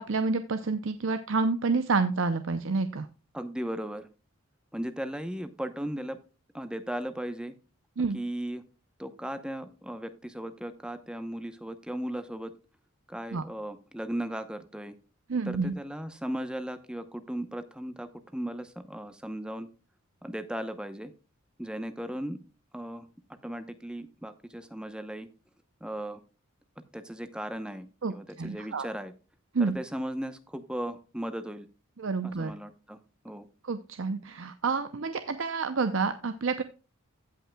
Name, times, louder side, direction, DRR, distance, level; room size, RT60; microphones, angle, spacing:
voice 1, 0.0-3.1 8.0-8.2 13.3-13.4 15.3-15.7 28.0-28.9 29.5-29.8 32.0-32.5 33.7-36.6, right 4 dB, 60° right, 10 dB, 0.6 m, -29 dB
voice 2, 3.3-4.1 4.7-6.2 6.5-7.6 8.1-8.6 9.0-12.5 13.1-15.0 15.4-19.7 20.2-21.1 21.6-22.4 22.7-23.1 23.4-25.3 25.8-26.2 26.9-29.1 29.6-31.7 32.2-33.0 33.2-33.5, right 1 dB, 5° right, 9 dB, 0.7 m, -36 dB
16.0 x 5.6 x 2.2 m, 0.34 s
head